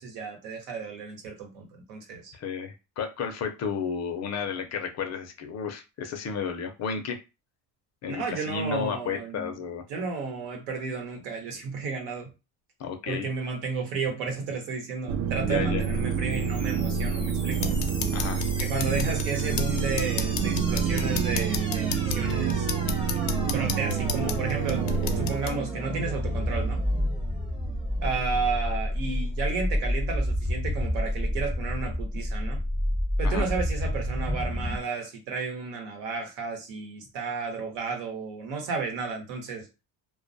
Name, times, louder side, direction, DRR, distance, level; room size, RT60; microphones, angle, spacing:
voice 1, 0.0-2.3 8.1-9.5 9.9-12.3 13.1-17.7 18.6-22.7 23.5-24.9 25.2-26.8 28.0-32.6 33.2-39.7, right 4 dB, 90° right, 3 dB, 1.0 m, -32 dB
voice 2, 2.3-7.2 8.0-9.8 12.8-13.3 15.4-15.8 18.1-18.4 33.2-33.5, left 6 dB, 40° left, 5 dB, 0.4 m, -32 dB
sound 1, 15.1-25.4, right 6 dB, 60° right, 0.5 m, -28 dB
sound 2, 15.8-34.8, equal, 10° right, 0.6 m, -31 dB
sound 3, 17.5-25.5, left 5 dB, 85° left, 0.6 m, -34 dB
2.2 x 2.2 x 2.5 m, 0.27 s
cardioid pair, 115°, 45 cm